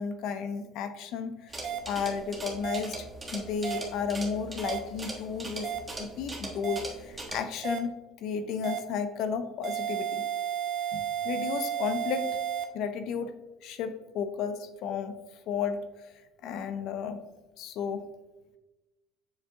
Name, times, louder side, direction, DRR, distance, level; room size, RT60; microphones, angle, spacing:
voice 1, 0.0-1.5 1.9-3.0 3.3-5.7 6.0-8.0 8.2-10.2 10.9-12.4 12.7-13.3 13.6-15.1 15.5-15.8 16.4-17.2 17.6-18.0, left 6 dB, 65° left, 9 dB, 0.5 m, -33 dB
sound 1, 1.5-7.4, right 2 dB, 15° right, 1.2 m, -40 dB
sound 2, 1.6-1.8 2.6-2.8 3.6-3.8 4.6-4.8 5.6-5.8 6.6-6.8 7.6-7.8 8.6-8.8 9.6-12.6, right 9 dB, 50° right, 0.8 m, -32 dB
7.3 x 4.8 x 2.8 m, 1.1 s
cardioid pair, 120°, 0 cm